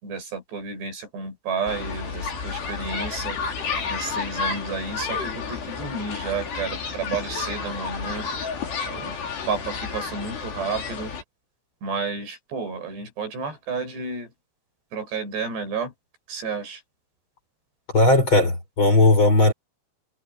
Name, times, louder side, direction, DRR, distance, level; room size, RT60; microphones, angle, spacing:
voice 1, 0.0-3.4 3.9-8.3 8.9-9.2 9.5-11.1 11.8-14.3 14.9-15.9 16.3-16.8, right 4 dB, 80° right, 10.5 m, -31 dB
sound 1, 1.7-11.2, left 5 dB, 75° left, 6.7 m, -31 dB
voice 2, 17.9-19.5, left 2 dB, 30° left, 5.5 m, -17 dB
omnidirectional pair, 4.8 m